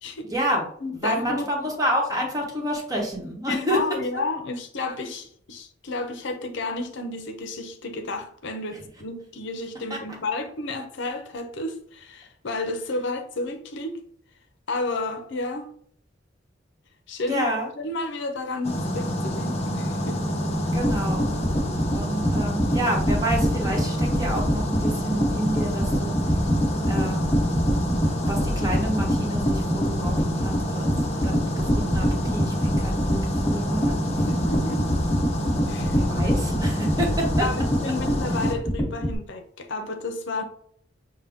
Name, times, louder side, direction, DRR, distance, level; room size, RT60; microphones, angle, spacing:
voice 1, 0.3-0.7 0.9-4.0 9.9-10.0 17.3-17.7 20.7-21.4 21.9-26.1 26.9-27.3 28.0-30.9 31.2-33.2 33.4-34.0 36.0-37.5, right 1 dB, 20° right, 1.1 m, -29 dB
voice 2, 0.8-1.5 3.5-14.0 14.7-15.7 17.1-17.5 17.8-20.2 34.3-34.8 35.7-36.3 37.4-40.4, left 2 dB, 65° left, 0.7 m, -31 dB
sound 1, 18.6-38.5, equal, 35° left, 0.8 m, -28 dB
sound 2, 20.5-39.1, equal, 10° left, 1.5 m, -25 dB
6.4 x 2.2 x 3.5 m
head